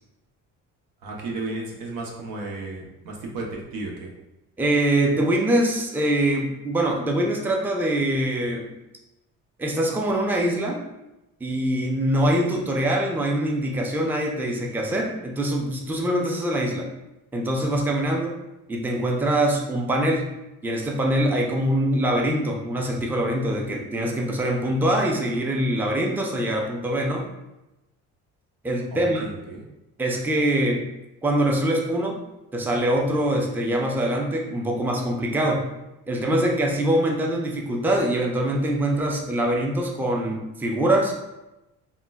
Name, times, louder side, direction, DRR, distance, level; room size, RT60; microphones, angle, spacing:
voice 1, 1.0-4.1 28.9-29.6, right 2 dB, 75° right, -1 dB, 0.8 m, -33 dB
voice 2, 4.6-8.7 9.6-10.8 11.4-16.9 17.3-18.4 18.7-20.3 20.6-27.2 28.6-29.3 30.0-30.9 31.2-32.2 32.5-35.7 36.1-41.1, right 1 dB, 5° right, 0 dB, 0.4 m, -23 dB
3.6 x 2.1 x 2.2 m, 0.95 s
supercardioid pair, 75°, 35 cm